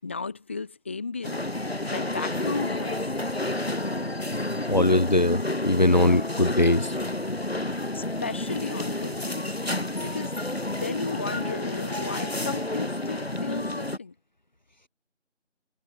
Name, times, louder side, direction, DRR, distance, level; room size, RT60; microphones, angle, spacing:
voice 1, 0.0-1.4 1.9-3.0 7.9-9.5 10.0-10.4 10.7-14.1, left 4 dB, 10° left, 5.3 m, -34 dB
sound 1, 1.2-14.0, left 1 dB, 55° left, 2.8 m, -30 dB
voice 2, 4.7-7.0, left 1 dB, 35° left, 4.2 m, -21 dB
figure-of-eight pair, 170°, 36 cm